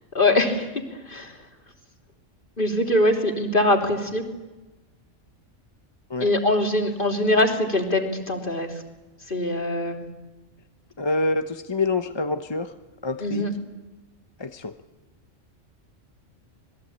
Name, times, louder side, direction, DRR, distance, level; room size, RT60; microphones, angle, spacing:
voice 1, 0.1-0.7 1.0-1.4 2.6-4.2 6.2-8.8 9.3-10.0 13.2-13.5, left 1 dB, 40° left, 3 dB, 3.2 m, -22 dB
voice 2, 11.0-12.8 13.0-13.5 14.4-14.8, left 2 dB, 25° left, 8 dB, 0.8 m, -26 dB
26.5 x 21.0 x 8.7 m, 1.1 s
omnidirectional pair, 1.3 m